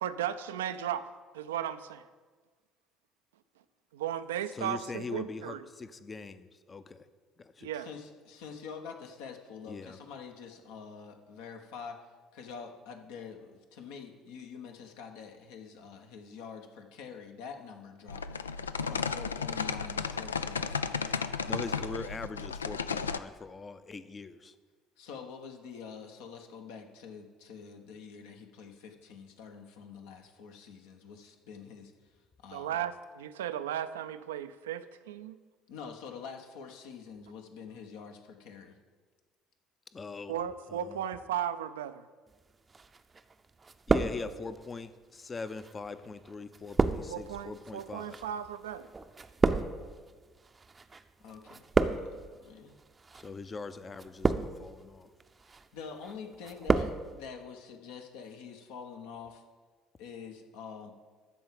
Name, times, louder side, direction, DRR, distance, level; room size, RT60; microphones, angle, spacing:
voice 1, 0.0-2.0 3.9-5.6 7.6-7.9 32.5-35.4 40.3-42.0 47.1-48.9, right 10 dB, 75° right, 12 dB, 0.4 m, -35 dB
voice 2, 4.5-7.0 7.4-7.7 9.7-10.0 21.5-24.5 39.9-40.3 40.7-41.0 43.9-48.2 53.1-55.1, left 4 dB, 30° left, 12 dB, 0.7 m, -41 dB
voice 3, 7.7-12.0 12.3-18.5 18.9-21.1 25.0-31.9 32.4-32.8 35.7-38.7 51.2-51.6 51.9-52.8 55.5-59.4 60.0-60.9, left 6 dB, 65° left, 4 dB, 1.2 m, -46 dB
sound 1, 18.1-23.2, left 6 dB, 80° left, 0.3 m, -34 dB
sound 2, 42.7-43.3 43.6-44.6 45.4-51.0 51.3-52.3 53.0-53.3 53.9-54.7 55.2-55.6 56.0-57.0 57.2-57.3, right 4 dB, 25° right, 0.6 m, -30 dB
13.0 x 4.7 x 7.5 m, 1.4 s
figure-of-eight pair, 55°, 0 cm